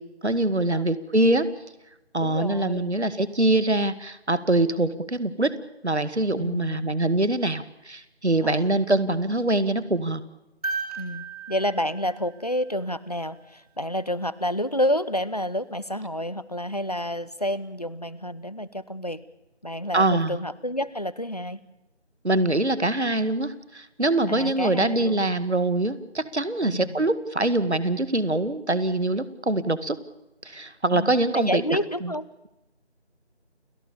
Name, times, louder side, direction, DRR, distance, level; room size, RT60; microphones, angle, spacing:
voice 1, 0.2-1.5 2.1-5.5 5.8-10.2 19.9-20.4 22.2-30.0 30.4-32.1, right 2 dB, 75° right, 14 dB, 2.0 m, -24 dB
voice 2, 2.2-2.9 6.4-6.9 8.4-8.7 11.0-19.2 19.6-21.6 24.3-25.2 26.6-27.0 30.9-32.3, equal, 35° left, 18 dB, 0.9 m, -29 dB
sound 1, 10.6-13.0 15.0-15.1, right 4 dB, 35° right, 3.9 m, -35 dB
29.0 x 18.5 x 7.1 m, 0.93 s
figure-of-eight pair, 170°, 34 cm